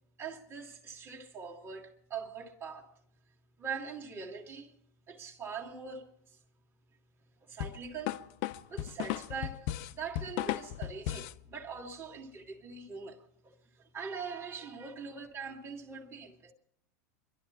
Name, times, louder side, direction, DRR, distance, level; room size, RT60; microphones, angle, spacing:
voice 1, 0.2-2.9 3.6-4.7 5.1-6.4 7.5-8.2 8.7-13.5 13.9-16.5, right 5 dB, 25° right, 1.8 m, -42 dB
sound 1, 7.6-11.4, left 13 dB, 55° left, 0.6 m, -36 dB
24.0 x 12.0 x 4.3 m
supercardioid pair, 120°, 10 cm